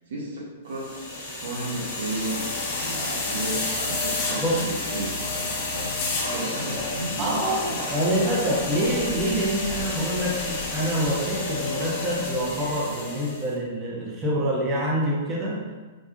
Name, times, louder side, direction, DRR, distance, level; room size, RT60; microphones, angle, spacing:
voice 1, 0.1-7.9, right 2 dB, 65° right, -4 dB, 0.9 m, -34 dB
sound 1, 0.7-13.5, left 3 dB, 40° left, 1.2 m, -30 dB
voice 2, 7.2-15.6, equal, 20° right, -4 dB, 0.9 m, -26 dB
3.9 x 3.5 x 2.5 m, 1.3 s
figure-of-eight pair, 110°, 0 cm